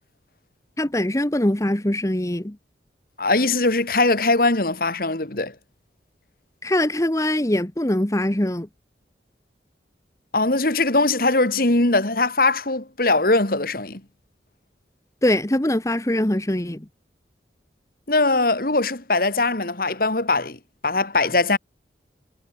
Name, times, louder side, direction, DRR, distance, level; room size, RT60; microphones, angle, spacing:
voice 1, 0.8-2.6 6.6-8.7 15.2-16.8, left 1 dB, 15° left, 1.1 m, -22 dB
voice 2, 3.2-5.5 10.3-14.0 18.1-21.6, left 2 dB, 55° left, 2.3 m, -21 dB
head